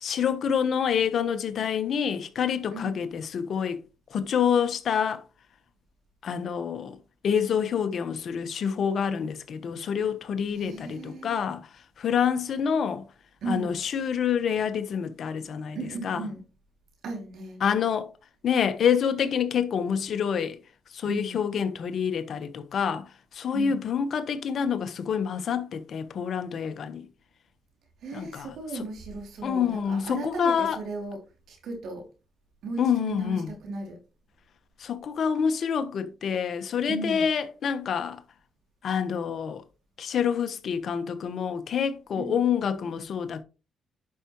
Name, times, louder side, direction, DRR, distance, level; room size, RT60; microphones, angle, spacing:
voice 1, 0.0-3.8 4.1-5.2 6.2-7.0 7.2-11.6 12.0-13.0 13.5-15.8 16.0-16.2 17.6-18.1 18.4-20.6 20.9-27.1 28.1-28.5 29.4-30.8 32.8-33.5 34.8-38.2 38.8-39.6 40.0-43.4, left 7 dB, 60° left, 1.2 m, -27 dB
voice 2, 2.7-3.0 10.5-11.4 13.4-13.8 15.7-16.4 17.0-17.6 21.0-21.4 23.5-23.8 28.0-32.1 32.6-34.0 36.9-37.3 42.1-42.4, right 3 dB, 75° right, 3.3 m, -36 dB
11.0 x 5.8 x 3.2 m
cardioid pair, 90°, 0 cm